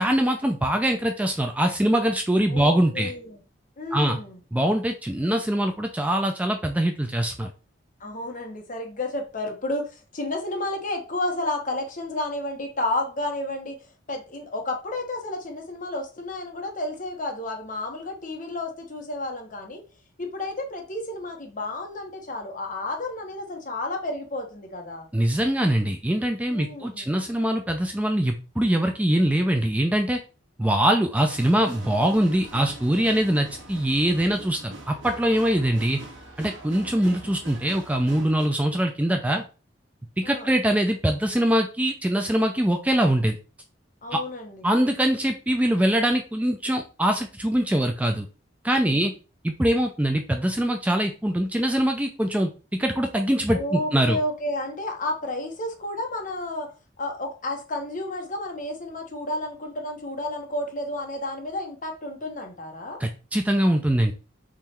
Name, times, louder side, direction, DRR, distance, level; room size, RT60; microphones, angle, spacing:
voice 1, 0.0-3.1 3.9-4.2 4.5-7.5 25.1-30.2 30.6-36.0 36.4-39.4 40.2-43.4 44.1-44.2 44.6-48.3 48.6-49.1 49.4-52.5 52.8-54.2 63.0-64.1, right 1 dB, 10° right, 4 dB, 0.4 m, -23 dB
voice 2, 2.5-3.4 3.8-4.4 8.0-13.8 14.1-19.8 20.2-25.1 26.5-27.2 40.2-40.5 44.0-44.7 48.8-49.1 53.5-56.7 57.0-63.0, left 1 dB, 45° left, 2 dB, 1.1 m, -31 dB
sound 1, 31.2-38.5, right 1 dB, 80° right, 1.2 m, -43 dB
3.7 x 3.1 x 4.3 m, 0.33 s
head